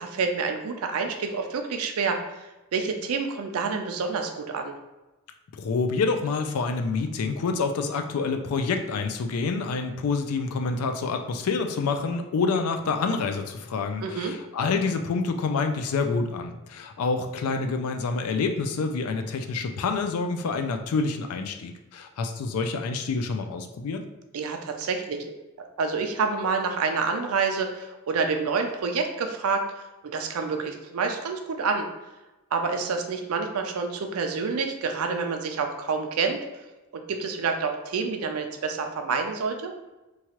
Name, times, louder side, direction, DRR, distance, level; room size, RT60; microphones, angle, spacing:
voice 1, 0.0-4.7 14.0-14.3 24.3-25.2 25.8-29.6 30.0-31.9 32.5-36.6 36.9-39.7, right 4 dB, 85° right, 5 dB, 0.4 m, -28 dB
voice 2, 5.5-24.0, left 4 dB, 90° left, 6 dB, 0.4 m, -27 dB
3.0 x 2.3 x 2.9 m, 1.1 s
head